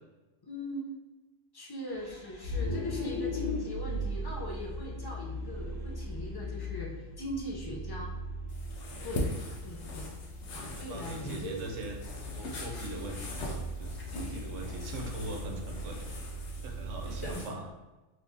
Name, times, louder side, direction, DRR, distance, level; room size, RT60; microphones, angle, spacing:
voice 1, 0.5-0.9 1.5-8.1 8.7-10.1 10.5-11.6 13.9-14.4 17.0-17.5, equal, 35° left, -2 dB, 0.3 m, -40 dB
Vehicle, 1.9-17.3, left 1 dB, 90° left, 1.4 m, -39 dB
sound 1, 8.5-17.5, left 1 dB, 70° left, 0.9 m, -41 dB
voice 2, 10.7-16.0 16.6-17.7, right 2 dB, 80° right, 1 dB, 1.0 m, -41 dB
3.4 x 3.1 x 2.7 m, 1.1 s
omnidirectional pair, 1.3 m